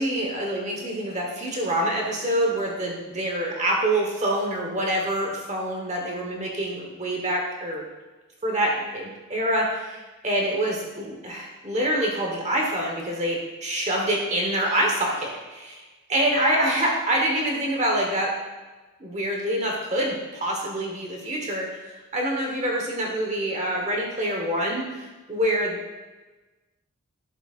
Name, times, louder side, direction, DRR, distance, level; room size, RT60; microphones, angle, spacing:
voice 1, 0.0-7.8 8.4-15.8 16.1-18.3 19.0-26.0, right 1 dB, 30° right, -1 dB, 1.2 m, -26 dB
11.5 x 8.0 x 2.5 m, 1.2 s
head